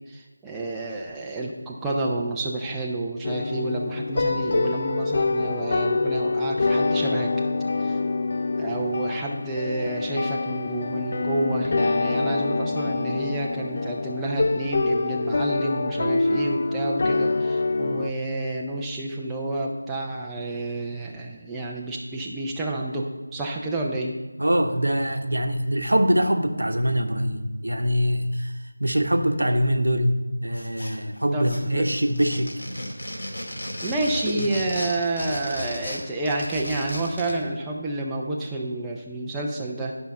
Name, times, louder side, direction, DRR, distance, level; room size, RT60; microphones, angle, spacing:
voice 1, 0.1-7.3 7.8-8.0 8.6-24.2 31.3-31.9 33.8-39.9, right 2 dB, 5° right, -3 dB, 0.6 m, -29 dB
sound 1, 3.2-18.1, left 3 dB, 40° left, 0.3 m, -25 dB
voice 2, 24.4-28.5 28.8-30.1 30.4-32.5 34.3-34.5, equal, 80° right, 6 dB, 1.0 m, -23 dB
sound 2, 30.5-31.2 31.4-37.4, equal, 65° left, 2.3 m, -35 dB
10.5 x 5.6 x 5.3 m, 1.3 s
figure-of-eight pair, 170°, 0 cm